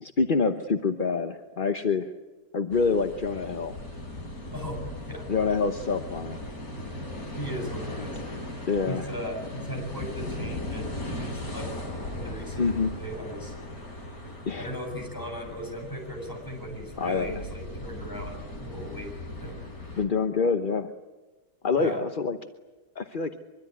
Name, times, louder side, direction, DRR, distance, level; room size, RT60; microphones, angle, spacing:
voice 1, 0.0-2.1 2.5-3.8 5.3-6.4 8.7-9.1 12.6-13.0 14.5-14.7 17.0-17.4 20.0-20.9 21.6-22.4 23.0-23.4, left 4 dB, 35° left, 7 dB, 1.0 m, -26 dB
sound 1, 2.7-20.0, left 1 dB, 55° left, 4.9 m, -38 dB
voice 2, 7.4-8.2 8.9-11.7 12.1-13.5 14.6-19.1 19.4-19.6 21.8-22.0, equal, 10° left, 1 dB, 7.8 m, -37 dB
24.0 x 24.0 x 9.5 m, 1.2 s
omnidirectional pair, 1.9 m